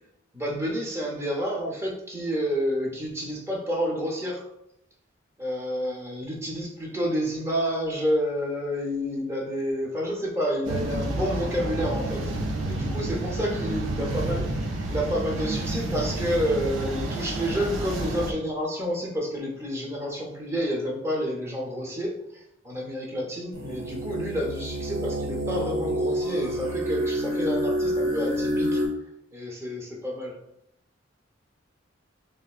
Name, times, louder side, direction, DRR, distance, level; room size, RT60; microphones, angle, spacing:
voice 1, 0.3-4.4 5.4-12.3 12.7-14.5 14.9-28.8 29.3-30.3, equal, 15° right, -2 dB, 0.6 m, -29 dB
sound 1, 10.6-18.3, right 2 dB, 85° right, 0.5 m, -30 dB
sound 2, 23.5-28.9, equal, 50° right, 0.9 m, -28 dB
3.3 x 2.5 x 2.3 m, 0.82 s
head